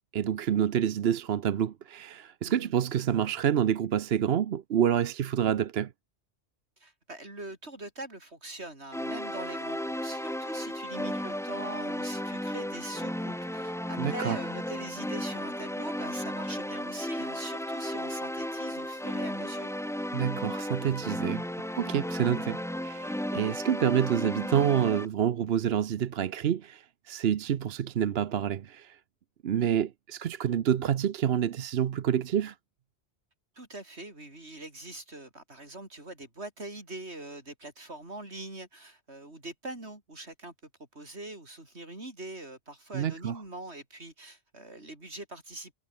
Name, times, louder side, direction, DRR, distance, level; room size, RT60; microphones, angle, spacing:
voice 1, 0.1-5.9 14.0-14.4 20.1-21.4 21.8-29.0 29.4-32.5 42.9-43.4, right 9 dB, 70° right, 1.0 m, -28 dB
voice 2, 6.8-19.7 29.6-29.8 33.6-40.5 40.9-45.7, right 2 dB, 90° right, 5.7 m, -43 dB
sound 1, 8.9-25.1, left 1 dB, 5° left, 0.6 m, -34 dB
omnidirectional pair, 1.1 m